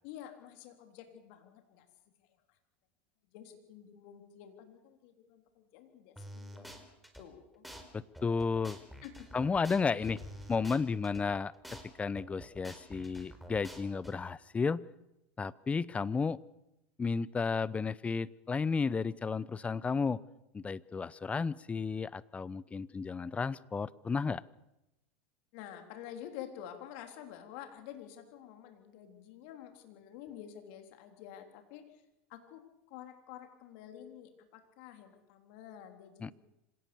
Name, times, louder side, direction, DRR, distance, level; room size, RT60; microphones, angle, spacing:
voice 1, 0.0-1.9 3.3-6.8 7.2-7.6 9.0-9.3 9.8-10.1 25.5-31.8 32.3-32.6 32.9-36.3, left 10 dB, 65° left, 6 dB, 3.5 m, -49 dB
sound 1, 6.2-7.2 7.6-7.8 8.1-11.2 11.6-11.8 12.1-14.1, equal, ahead, 4.3 m, -48 dB
voice 2, 7.9-8.8 9.3-10.2 10.5-11.5 12.0-14.8 15.4-16.4 17.0-20.2 20.5-24.4 36.2-36.3, left 5 dB, 20° left, 20 dB, 0.8 m, -33 dB
Explosion, 10.0-13.8, left 5 dB, 40° left, 4.8 m, -56 dB
26.0 x 17.5 x 7.0 m, 0.91 s
hypercardioid pair, 95°, 7 cm